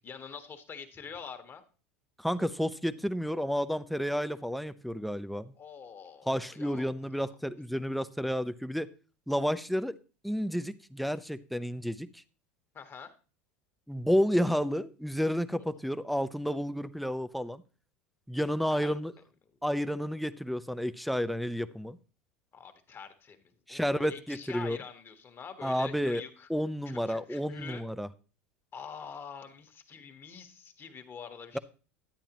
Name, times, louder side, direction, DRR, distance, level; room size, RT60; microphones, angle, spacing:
voice 1, 0.0-1.6 5.6-7.3 12.7-13.1 15.6-15.7 18.7-18.9 22.5-26.5 26.9-27.8 28.7-31.6, left 6 dB, 30° left, 1.3 m, -46 dB
voice 2, 2.2-5.5 6.3-8.9 9.3-10.0 10.2-12.2 13.9-17.6 18.3-19.1 19.6-22.0 23.7-24.8 25.6-26.2 26.5-28.1, equal, ahead, 0.5 m, -31 dB
10.5 x 8.9 x 3.0 m
hypercardioid pair, 90°, 7 cm